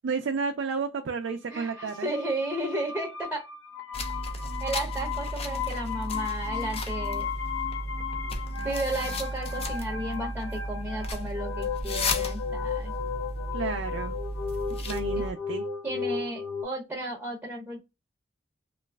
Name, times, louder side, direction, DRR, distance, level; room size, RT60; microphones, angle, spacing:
voice 1, 0.0-2.1 13.5-14.1 14.9-15.6, right 5 dB, 75° right, 0.4 m, -31 dB
sound 1, 1.5-16.6, left 6 dB, 80° left, 0.6 m, -35 dB
voice 2, 1.5-3.5 4.6-7.3 8.6-12.9 14.7-14.8 15.8-17.8, right 1 dB, 10° right, 0.7 m, -33 dB
sound 2, 3.9-15.3, equal, 30° left, 0.4 m, -34 dB
3.0 x 2.4 x 2.2 m
head